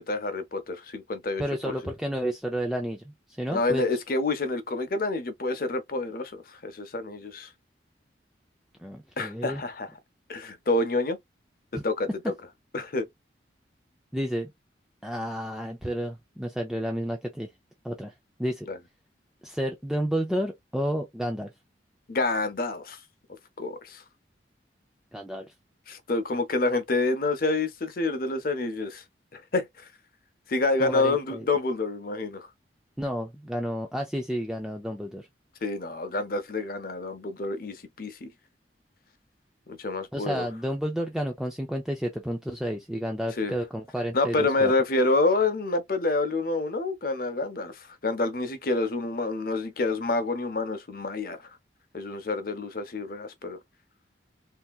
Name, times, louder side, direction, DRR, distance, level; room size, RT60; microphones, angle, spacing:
voice 1, 0.0-1.7 3.5-7.5 9.2-9.9 10.3-11.2 11.8-12.1 12.7-13.1 18.7-18.8 22.1-23.0 23.6-24.0 25.9-29.0 29.3-29.7 30.5-32.5 35.6-38.3 39.7-40.5 43.4-43.6 44.1-51.4 51.9-53.6, left 3 dB, 50° left, 0.7 m, -28 dB
voice 2, 1.4-3.8 8.8-9.6 11.7-11.8 14.1-14.5 15.0-17.5 17.8-18.1 18.4-18.7 19.4-21.5 25.1-25.5 30.8-31.4 33.0-35.3 40.1-44.7, equal, 5° right, 0.4 m, -31 dB
3.3 x 2.8 x 2.3 m
head